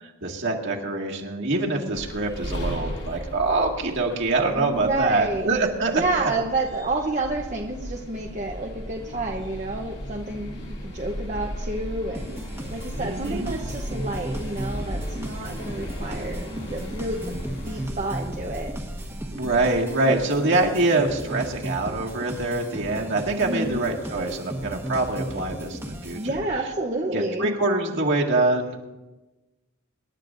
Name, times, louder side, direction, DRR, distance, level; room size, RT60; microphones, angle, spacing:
voice 1, 0.2-6.3 13.0-13.5 19.3-26.4 27.1-28.8, right 2 dB, 55° right, -1 dB, 1.9 m, -25 dB
sound 1, 1.9-17.9, equal, 50° left, 2.4 m, -38 dB
voice 2, 4.6-5.6 5.9-12.4 12.7-17.3 17.6-18.7 19.4-19.5 23.4-23.8 26.1-27.5, right 2 dB, 30° right, 0 dB, 0.8 m, -29 dB
sound 2, 7.2-19.7, equal, 15° left, 1.4 m, -37 dB
sound 3, 12.1-26.7, right 1 dB, 10° right, 1.2 m, -36 dB
26.5 x 11.5 x 2.6 m, 1.1 s
head